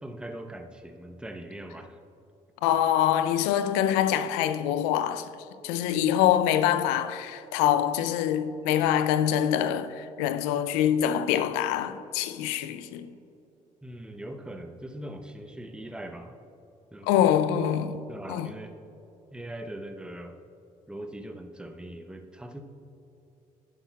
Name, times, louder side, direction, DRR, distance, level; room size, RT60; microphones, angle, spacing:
voice 1, 0.0-2.0 13.8-16.4 16.9-17.1 18.1-18.7 19.3-20.4 20.9-22.6, right 1 dB, 5° right, 0.8 m, -41 dB
voice 2, 2.6-5.3 5.6-13.1 17.0-18.0 18.3-18.5, left 10 dB, 80° left, 0.5 m, -25 dB
11.5 x 11.0 x 2.3 m
hypercardioid pair, 50°, 17 cm